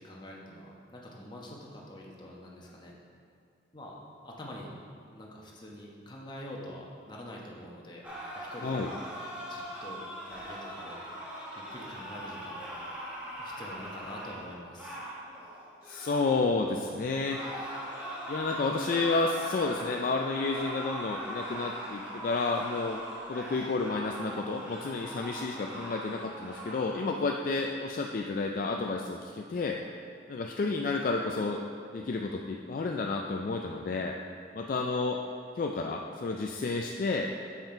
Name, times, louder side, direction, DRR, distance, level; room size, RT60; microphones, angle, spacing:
voice 1, 0.0-2.9 3.7-4.7 5.1-8.0 8.3-8.9 9.5-10.0 10.3-11.0 11.7-12.8 13.4-15.0 25.4-25.8, left 1 dB, 25° left, -3 dB, 1.0 m, -45 dB
sound 1, 8.0-16.5 17.2-27.2, right 1 dB, 10° right, 1.2 m, -41 dB
voice 2, 15.8-17.4 18.3-23.0 23.3-29.8 30.3-31.6 31.9-34.2 34.5-35.2 35.6-37.3, left 3 dB, 50° left, 1 dB, 0.3 m, -31 dB
7.3 x 5.7 x 4.4 m, 2.4 s
head